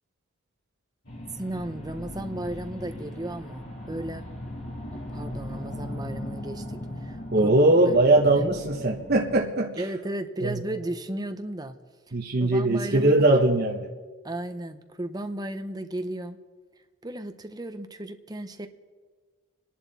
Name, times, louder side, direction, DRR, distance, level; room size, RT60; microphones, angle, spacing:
sound 1, 1.1-9.4, left 1 dB, 70° left, 3.5 m, -38 dB
voice 1, 1.3-4.3 5.1-7.5 7.9-8.0 8.3-8.5 9.8-11.8 12.4-13.1 14.2-16.4 17.0-18.7, right 1 dB, 20° right, 8 dB, 0.8 m, -34 dB
voice 2, 7.3-9.8 10.4-10.6 12.1-13.9, right 2 dB, 50° right, 0 dB, 1.1 m, -21 dB
27.0 x 11.0 x 4.1 m, 1.5 s
head